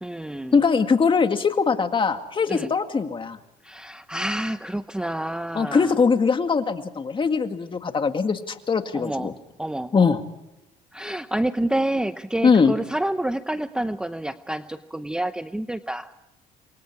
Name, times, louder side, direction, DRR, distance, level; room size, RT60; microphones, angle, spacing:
voice 1, 0.0-0.6 2.5-2.7 3.6-5.9 8.9-9.3 9.6-9.9 10.9-16.1, right 1 dB, 5° right, 10 dB, 0.8 m, -28 dB
voice 2, 0.5-3.4 5.5-9.3 9.9-10.2 12.4-12.7, left 5 dB, 30° left, 7 dB, 2.1 m, -21 dB
28.0 x 23.0 x 4.7 m, 0.95 s
cardioid pair, 110°, 17 cm